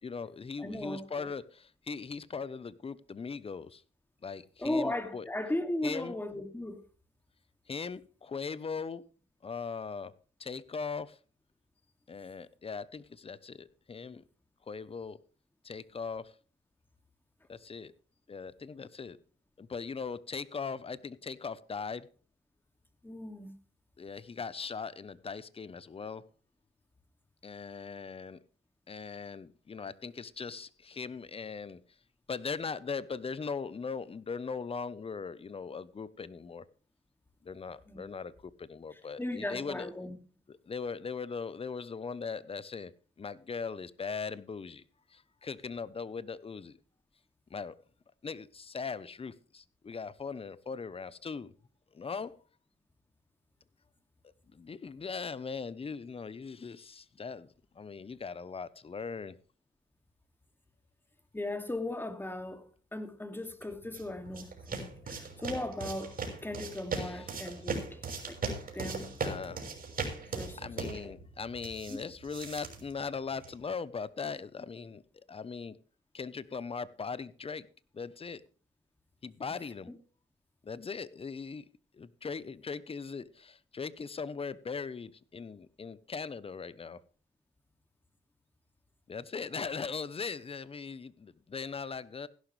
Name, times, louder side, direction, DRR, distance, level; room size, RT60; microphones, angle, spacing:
voice 1, 0.0-3.8 4.2-5.3 5.8-6.2 7.7-9.0 9.4-10.1 10.4-11.2 12.1-14.2 14.7-15.2 15.6-16.3 17.5-17.9 18.3-19.2 19.6-22.1 24.0-26.2 27.4-28.4 28.9-31.8 32.3-36.6 37.4-39.9 40.5-42.9 43.2-44.8 45.1-46.8 47.5-47.8 48.2-51.5 51.9-52.3 54.5-57.5 57.7-59.3 66.9-67.3 69.2-69.6 70.6-75.8 76.1-77.7 77.9-78.4 79.2-79.9 80.6-81.6 81.9-87.0 89.1-92.3, left 5 dB, 30° left, 1.0 m, -39 dB
voice 2, 0.6-1.3 4.6-6.8 23.0-23.5 37.9-38.0 39.2-40.2 61.3-62.7 62.9-66.2 66.4-68.0 68.3-69.1 70.3-70.6 71.0-71.1 71.9-72.0, left 1 dB, 10° left, 2.5 m, -37 dB
sound 1, 63.6-73.6, right 4 dB, 45° right, 6.0 m, -39 dB
16.0 x 11.5 x 3.4 m
cardioid pair, 90°, 20 cm